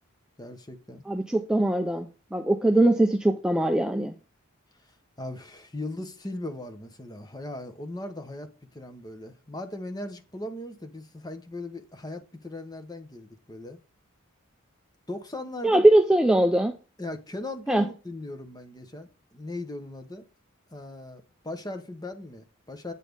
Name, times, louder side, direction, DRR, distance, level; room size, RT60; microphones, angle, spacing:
voice 1, 0.4-1.0 4.8-13.8 15.1-15.8 17.0-20.2 20.7-22.9, left 2 dB, 20° left, 1.0 m, -38 dB
voice 2, 1.1-4.1 15.6-16.8 17.7-17.8, right 1 dB, 5° right, 0.4 m, -21 dB
8.3 x 4.2 x 5.2 m
head